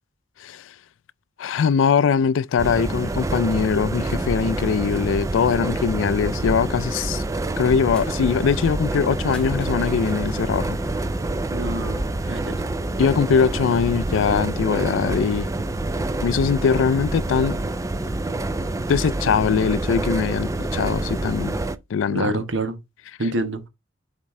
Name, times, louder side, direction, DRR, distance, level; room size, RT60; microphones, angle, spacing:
voice 1, 0.4-0.7 1.4-7.2 7.6-10.8 13.0-15.5 16.2-17.6 18.9-21.6 21.9-22.3, left 6 dB, 80° left, 0.4 m, -21 dB
sound 1, 2.6-21.8, right 2 dB, 15° right, 0.4 m, -27 dB
sound 2, 7.2-12.3, equal, 35° right, 1.6 m, -43 dB
sound 3, 7.9-8.2 8.5-8.6 9.1-11.4, left 1 dB, 5° left, 2.1 m, -47 dB
voice 2, 11.5-12.0 12.3-12.5 22.1-22.8 23.2-23.7, right 2 dB, 75° right, 1.1 m, -26 dB
7.2 x 4.4 x 3.6 m
head